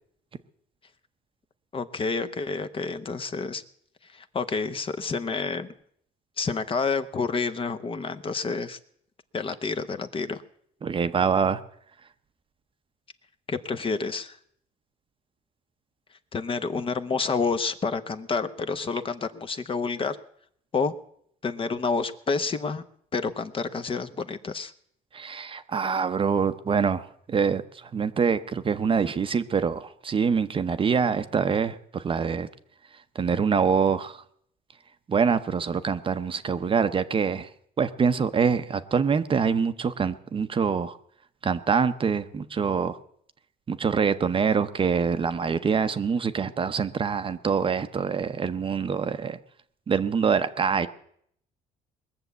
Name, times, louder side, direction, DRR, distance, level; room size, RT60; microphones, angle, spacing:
voice 1, 1.7-3.6 4.1-5.7 6.4-8.8 9.3-10.4 13.5-14.4 16.3-20.2 20.7-20.9 21.4-22.8 23.1-24.7, left 4 dB, 30° left, 10 dB, 0.9 m, -29 dB
voice 2, 10.8-11.6 25.1-32.5 33.1-34.2 35.1-37.5 37.8-41.0 41.4-43.0 43.7-49.4 49.9-50.9, right 6 dB, 30° right, 11 dB, 0.7 m, -25 dB
20.5 x 7.1 x 8.1 m, 0.68 s
cardioid pair, 110°, 17 cm